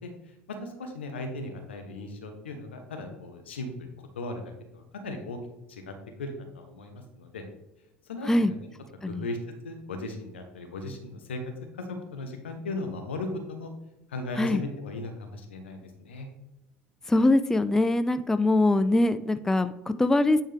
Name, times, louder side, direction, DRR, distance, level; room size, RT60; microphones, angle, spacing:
voice 1, 0.0-5.4 5.7-7.4 8.0-8.6 9.1-9.4 9.6-11.4 11.7-13.7 14.1-16.3, left 2 dB, 80° left, 5 dB, 1.0 m, -37 dB
voice 2, 17.1-20.4, left 2 dB, 10° left, 12 dB, 0.3 m, -23 dB
9.3 x 3.6 x 3.5 m, 0.92 s
figure-of-eight pair, 65°, 6 cm